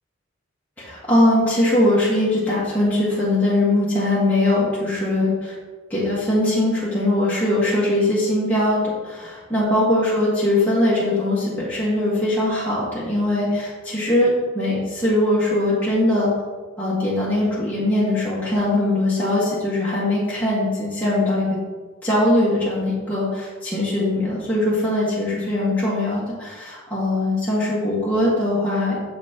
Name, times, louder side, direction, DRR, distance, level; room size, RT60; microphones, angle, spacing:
voice 1, 0.8-5.5 5.9-16.3 16.8-21.5 22.0-29.0, left 1 dB, 10° left, -10 dB, 1.5 m, -21 dB
7.0 x 5.8 x 2.9 m, 1.3 s
head